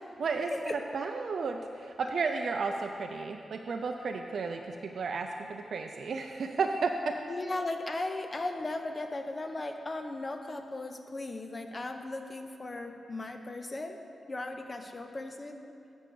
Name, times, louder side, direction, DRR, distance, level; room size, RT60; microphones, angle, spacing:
voice 1, 0.2-7.2, right 4 dB, 65° right, 4 dB, 0.4 m, -33 dB
voice 2, 7.3-14.0 14.2-15.6, left 2 dB, 30° left, 5 dB, 0.7 m, -37 dB
7.6 x 6.2 x 6.9 m, 2.6 s
wide cardioid pair, 110°, 0 cm